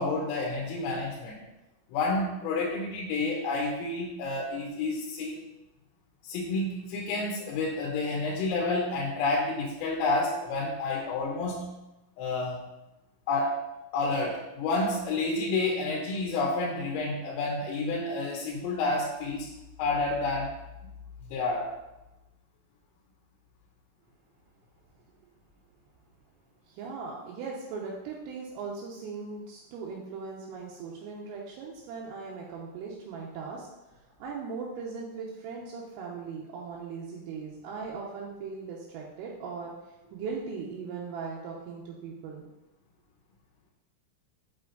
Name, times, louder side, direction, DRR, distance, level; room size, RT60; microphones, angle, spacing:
voice 1, 0.0-1.4 1.9-5.4 6.2-11.7 12.2-12.6 13.3-13.6 13.9-19.5 19.8-20.5 21.2-21.8, left 3 dB, 85° left, -2 dB, 3.7 m, -29 dB
voice 2, 26.7-39.7 40.1-42.5, right 5 dB, 80° right, -3 dB, 3.5 m, -39 dB
8.4 x 5.8 x 3.9 m, 0.97 s
omnidirectional pair, 5.9 m